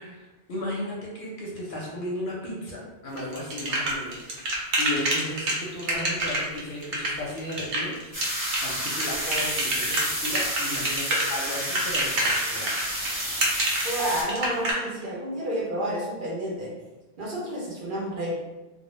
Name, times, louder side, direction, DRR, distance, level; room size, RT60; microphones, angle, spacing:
voice 1, 0.0-8.2 8.6-12.9, left 1 dB, 60° left, -4 dB, 0.6 m, -35 dB
sound 1, 3.2-14.7, right 1 dB, 90° right, 0.9 m, -27 dB
sound 2, 8.1-14.2, equal, 20° right, 0.8 m, -30 dB
voice 2, 13.8-16.7 17.2-18.3, right 1 dB, 60° right, -5 dB, 0.6 m, -30 dB
2.0 x 2.0 x 3.0 m, 1.1 s
omnidirectional pair, 1.1 m